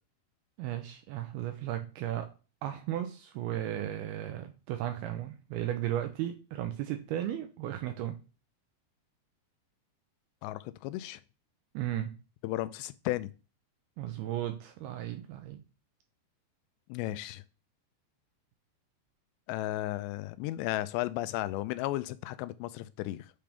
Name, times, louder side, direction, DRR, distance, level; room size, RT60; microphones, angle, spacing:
voice 1, 0.6-2.3 2.6-8.2 11.7-12.2 14.0-15.6, right 12 dB, 85° right, 2.2 m, -35 dB
voice 2, 10.4-11.2 12.4-13.3 16.9-17.4 19.5-23.3, left 16 dB, 85° left, 2.6 m, -34 dB
8.6 x 3.4 x 5.2 m
omnidirectional pair, 5.2 m